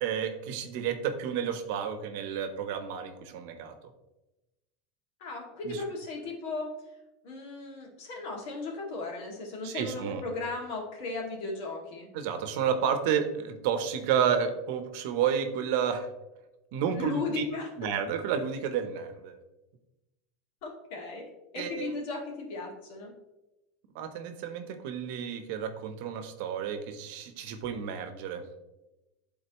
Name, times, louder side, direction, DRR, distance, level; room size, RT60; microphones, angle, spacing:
voice 1, 0.0-3.7 5.6-5.8 9.6-10.3 12.1-16.1 16.7-17.4 17.8-19.4 21.6-21.9 23.9-28.4, right 8 dB, 65° right, 8 dB, 0.9 m, -31 dB
voice 2, 5.2-6.7 7.2-12.1 16.9-17.7 20.6-21.2 21.5-23.1, left 3 dB, 65° left, -1 dB, 2.3 m, -36 dB
11.0 x 3.9 x 3.0 m, 1.0 s
supercardioid pair, 145°, 0 cm